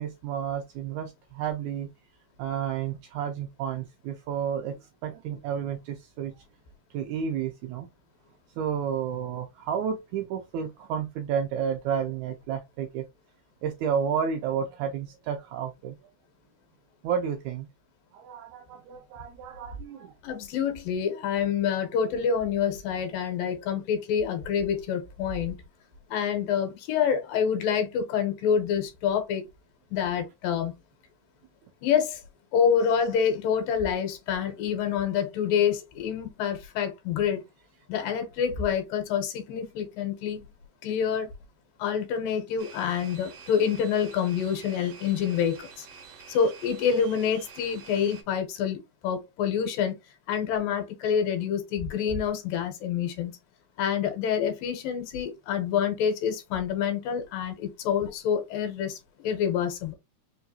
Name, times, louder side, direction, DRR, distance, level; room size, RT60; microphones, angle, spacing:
voice 1, 0.0-1.9 2.4-4.8 5.0-6.3 6.9-7.9 8.6-13.0 13.6-16.0 17.0-17.7 18.1-20.1, right 8 dB, 85° right, 1.6 m, -31 dB
voice 2, 20.2-25.6 26.1-29.4 29.9-30.7 31.8-32.2 32.5-37.4 37.9-40.5 40.8-41.3 41.8-45.9 46.3-49.9 50.3-53.3 53.8-59.9, left 7 dB, 90° left, 2.6 m, -27 dB
sound 1, 42.6-48.2, right 6 dB, 70° right, 1.5 m, -48 dB
5.3 x 2.3 x 2.7 m
omnidirectional pair, 3.8 m